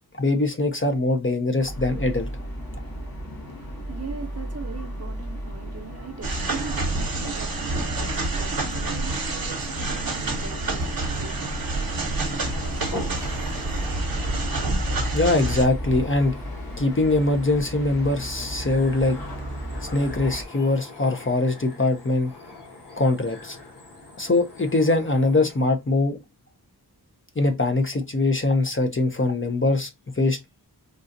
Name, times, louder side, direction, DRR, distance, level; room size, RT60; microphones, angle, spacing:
voice 1, 0.2-2.3 15.1-16.3 16.8-19.2 19.9-22.3 23.0-23.6 24.2-26.2 27.4-29.9 30.1-30.4, left 2 dB, 30° left, 0.7 m, -22 dB
sound 1, 1.6-20.5, equal, 65° left, 1.2 m, -35 dB
voice 2, 3.3-12.0, right 6 dB, 40° right, 0.7 m, -41 dB
sound 2, 6.2-15.7, right 2 dB, 60° right, 0.9 m, -28 dB
sound 3, 11.7-25.7, left 2 dB, 90° left, 1.3 m, -43 dB
3.8 x 2.4 x 2.6 m
wide cardioid pair, 60°, 39 cm